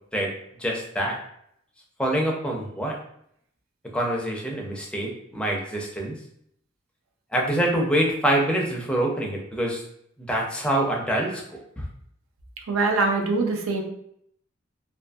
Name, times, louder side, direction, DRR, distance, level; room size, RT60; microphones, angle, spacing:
voice 1, 0.6-1.2 2.0-3.0 3.9-6.1 7.3-9.8 10.3-11.4 11.8-11.9, right 1 dB, 5° left, -1 dB, 0.4 m, -25 dB
voice 2, 12.7-13.8, right 3 dB, 85° right, 2 dB, 0.5 m, -23 dB
2.6 x 2.5 x 2.3 m, 0.71 s
head